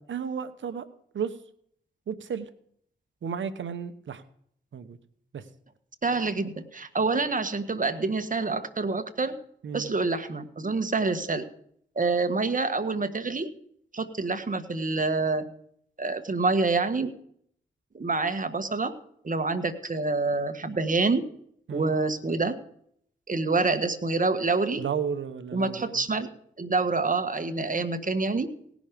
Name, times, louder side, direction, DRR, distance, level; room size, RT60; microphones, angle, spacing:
voice 1, 0.1-0.9 1.1-1.3 2.1-2.5 3.2-4.2 4.7-5.0 5.3-5.4 9.6-9.9 21.7-21.9 24.8-26.1, right 7 dB, 75° right, 11 dB, 1.1 m, -33 dB
voice 2, 6.0-9.4 9.7-11.4 11.9-13.5 13.9-15.5 16.0-17.1 17.9-18.9 19.2-21.2 21.7-22.6 23.3-24.8 25.5-26.3 26.6-28.5, right 3 dB, 40° right, 9 dB, 1.6 m, -27 dB
18.0 x 6.3 x 5.2 m, 0.66 s
supercardioid pair, 40°, 20 cm